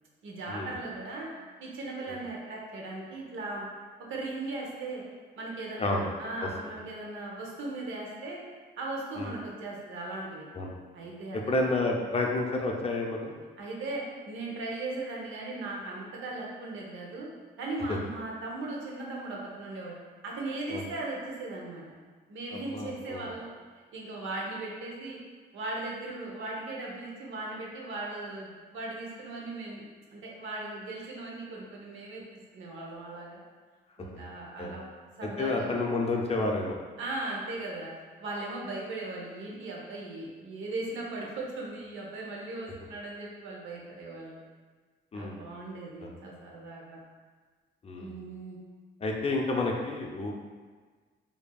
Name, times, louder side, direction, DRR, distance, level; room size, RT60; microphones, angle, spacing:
voice 1, 0.2-1.3 1.6-3.7 4.1-5.0 5.4-8.4 8.8-10.5 10.9-11.5 13.6-17.3 17.6-20.0 20.2-21.9 22.3-23.5 23.9-25.2 25.5-33.4 34.0-34.9 35.2-35.7 37.0-37.9 38.2-44.4 45.1-47.0 48.0-48.6, right 2 dB, 80° right, -3 dB, 0.9 m, -38 dB
voice 2, 11.3-13.4 17.9-18.0 20.7-20.8 22.5-23.3 34.1-34.2 34.6-34.7 35.2-36.8 45.1-45.4 46.0-46.1 47.8-48.1 49.0-50.3, left 2 dB, 30° left, 0 dB, 0.5 m, -30 dB
4.7 x 2.7 x 2.3 m, 1.5 s
cardioid pair, 90°, 20 cm